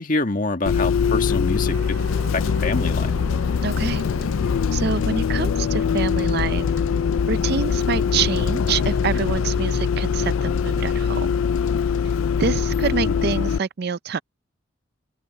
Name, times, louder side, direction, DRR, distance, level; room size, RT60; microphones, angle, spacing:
voice 1, 0.0-2.0 2.3-3.1 13.0-13.2, left 2 dB, 40° left, 1.8 m, -26 dB
Bus, 0.7-13.6, left 6 dB, 85° left, 0.4 m, -22 dB
sound 1, 1.7-11.0, right 2 dB, 85° right, 1.8 m, -40 dB
voice 2, 3.6-4.0 4.7-6.7 7.3-11.3 12.4-14.2, right 5 dB, 50° right, 0.5 m, -26 dB
open air
head